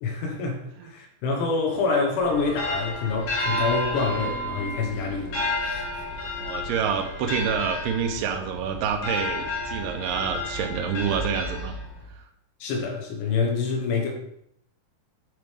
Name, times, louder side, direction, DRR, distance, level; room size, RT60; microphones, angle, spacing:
voice 1, 0.0-5.9 12.6-14.2, left 4 dB, 80° left, 2 dB, 3.1 m, -27 dB
sound 1, 2.2-12.1, left 1 dB, 60° left, 1.6 m, -31 dB
voice 2, 6.4-11.7 12.1-12.2, right 7 dB, 80° right, 3 dB, 1.9 m, -27 dB
9.4 x 3.4 x 3.4 m, 0.72 s
omnidirectional pair, 4.8 m